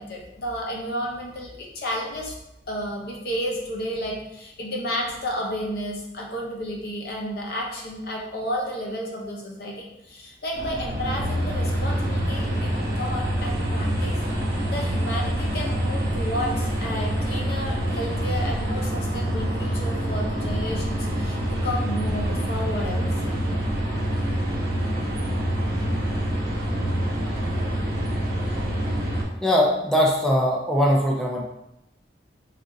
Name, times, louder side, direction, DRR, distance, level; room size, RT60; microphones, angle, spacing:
voice 1, 0.0-2.3 2.7-14.2 14.7-23.1, equal, 60° left, -1 dB, 0.6 m, -32 dB
sound 1, 10.5-29.2, equal, 60° right, 1.0 m, -26 dB
voice 2, 29.4-31.4, equal, 5° left, -2 dB, 0.4 m, -21 dB
2.4 x 2.4 x 3.9 m, 0.86 s
head